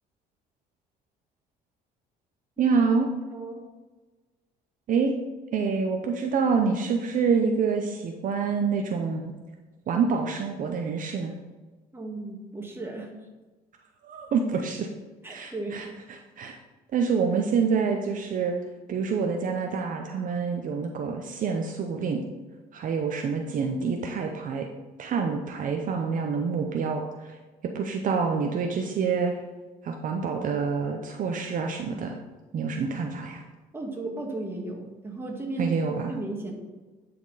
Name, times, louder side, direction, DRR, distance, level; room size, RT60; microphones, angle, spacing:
voice 1, 2.6-3.1 4.9-5.1 5.5-9.3 9.9-11.3 14.0-14.9 15.3-15.9 16.4-16.5 16.9-18.5 18.9-22.2 22.7-24.7 25.0-27.3 27.7-29.3 29.8-32.1 32.5-33.4 35.6-36.1, right 5 dB, 50° right, 3 dB, 0.7 m, -27 dB
voice 2, 3.3-3.6 11.9-13.1 15.2-15.8 33.7-35.8 36.1-36.5, right 2 dB, 15° right, 0 dB, 1.7 m, -35 dB
10.0 x 4.4 x 4.0 m, 1.3 s
cardioid pair, 110°, 17 cm